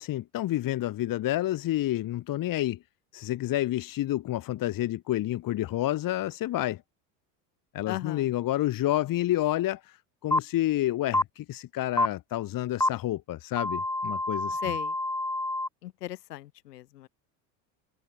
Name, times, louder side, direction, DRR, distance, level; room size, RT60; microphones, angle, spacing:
voice 1, 0.0-2.8 3.1-6.8 7.7-14.6, left 14 dB, 45° left, 1.8 m, -29 dB
voice 2, 7.9-8.3 14.6-14.9 15.8-17.1, left 15 dB, 75° left, 5.5 m, -37 dB
sound 1, 10.3-10.4 11.1-11.2 12.0-12.1 12.8-12.9 13.6-15.7, left 2 dB, 5° left, 1.2 m, -27 dB
hypercardioid pair, 80°, 48 cm